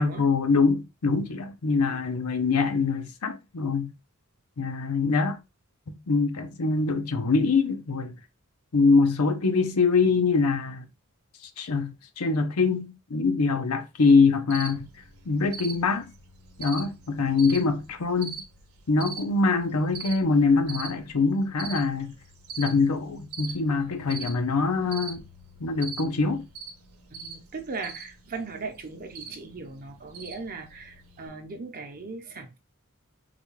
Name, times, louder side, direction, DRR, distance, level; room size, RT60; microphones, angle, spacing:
voice 1, 0.0-3.9 4.6-5.4 5.9-8.1 8.7-10.9 11.6-14.9 15.3-16.1 16.6-18.4 18.9-22.1 22.6-25.2 25.6-26.4, left 4 dB, 85° left, 0.7 m, -24 dB
Cricket, 14.5-31.3, right 5 dB, 75° right, 0.8 m, -43 dB
voice 2, 27.1-32.6, right 4 dB, 40° right, 0.7 m, -38 dB
3.9 x 2.3 x 3.1 m
head